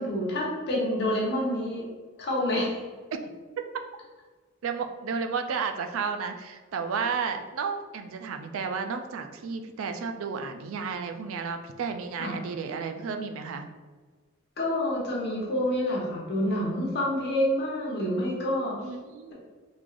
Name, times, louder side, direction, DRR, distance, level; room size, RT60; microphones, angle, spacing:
voice 1, 0.0-1.8 2.2-2.8 12.2-12.3 14.6-18.8, left 1 dB, 55° left, -4 dB, 1.1 m, -27 dB
voice 2, 4.6-13.6 18.8-19.3, right 5 dB, 80° right, 6 dB, 0.4 m, -32 dB
3.6 x 3.2 x 2.5 m, 1.4 s
head